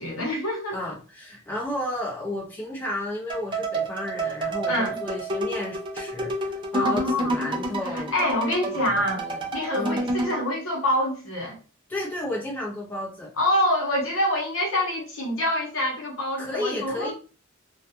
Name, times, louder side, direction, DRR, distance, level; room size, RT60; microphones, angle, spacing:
voice 1, 0.0-0.8 4.7-5.0 6.8-7.4 7.9-9.2 9.5-11.6 13.4-17.1, left 1 dB, 75° left, 0.9 m, -26 dB
voice 2, 0.7-8.1 8.7-9.4 9.7-10.0 11.9-13.3 16.4-17.1, left 1 dB, 10° left, 0.7 m, -32 dB
sound 1, 3.3-10.4, right 1 dB, 25° right, 0.4 m, -29 dB
2.3 x 2.3 x 2.8 m
head